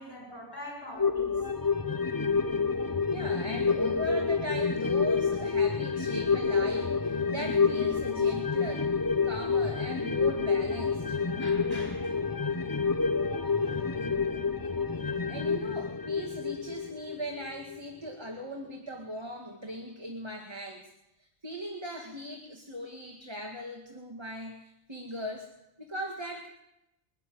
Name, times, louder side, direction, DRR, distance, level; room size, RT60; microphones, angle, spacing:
voice 1, 0.0-1.4 11.4-12.7 13.4-14.0, left 1 dB, 75° left, 1 dB, 7.0 m, -45 dB
sound 1, 1.0-17.8 18.1-18.2, left 5 dB, 20° left, 0.7 m, -28 dB
voice 2, 3.1-8.9 9.2-11.2 14.7-14.8 15.3-20.9 21.2-25.5 25.8-26.5, equal, 25° right, 2 dB, 2.1 m, -39 dB
23.5 x 13.0 x 9.3 m, 0.86 s
omnidirectional pair, 1.1 m